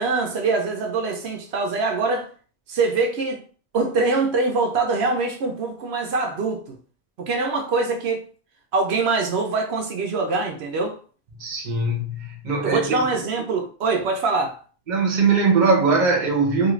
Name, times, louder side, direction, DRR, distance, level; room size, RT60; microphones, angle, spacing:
voice 1, 0.0-2.3 2.7-3.4 3.7-6.8 7.2-8.2 8.7-11.0 12.6-14.6, right 3 dB, 85° right, 0.9 m, -23 dB
voice 2, 11.4-13.0 14.9-16.7, right 4 dB, 50° right, 0.9 m, -20 dB
2.7 x 2.5 x 3.1 m
omnidirectional pair, 1.1 m